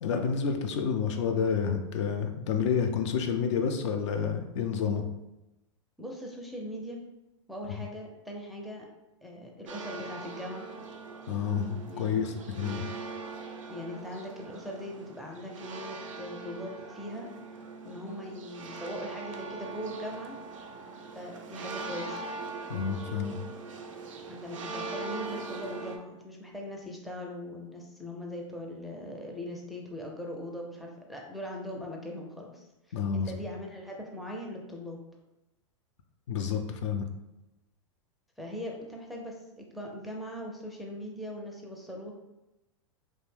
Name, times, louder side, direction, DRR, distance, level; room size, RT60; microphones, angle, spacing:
voice 1, 0.0-5.0 11.3-12.8 22.7-23.4 32.9-33.3 36.3-37.1, left 6 dB, 65° left, 5 dB, 0.4 m, -29 dB
voice 2, 6.0-7.0 7.5-8.9 9.2-10.7 11.9-12.4 13.7-17.3 17.8-20.4 21.1-22.2 24.3-32.7 33.1-35.0 38.4-42.1, left 1 dB, ahead, -1 dB, 0.4 m, -40 dB
sound 1, 9.7-26.0, right 4 dB, 80° right, 0.4 m, -41 dB
2.5 x 2.1 x 3.2 m, 0.97 s
hypercardioid pair, 105°, 16 cm